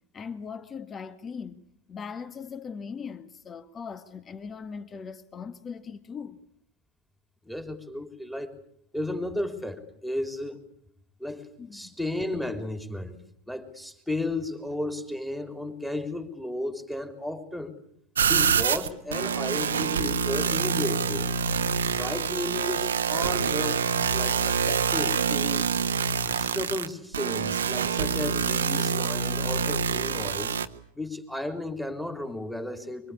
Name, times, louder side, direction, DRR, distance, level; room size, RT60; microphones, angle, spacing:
voice 1, 0.1-1.6 1.9-6.4 11.6-11.9, left 6 dB, 20° left, 1.8 m, -39 dB
voice 2, 7.5-8.5 8.9-10.6 11.2-13.2 13.5-17.8 18.3-21.4 21.9-23.8 24.1-25.7 26.3-30.6 30.9-33.1, left 1 dB, ahead, 3.6 m, -34 dB
sound 1, 18.2-30.7, right 6 dB, 65° right, 1.4 m, -26 dB
25.5 x 25.0 x 8.5 m
figure-of-eight pair, 90°, 0 cm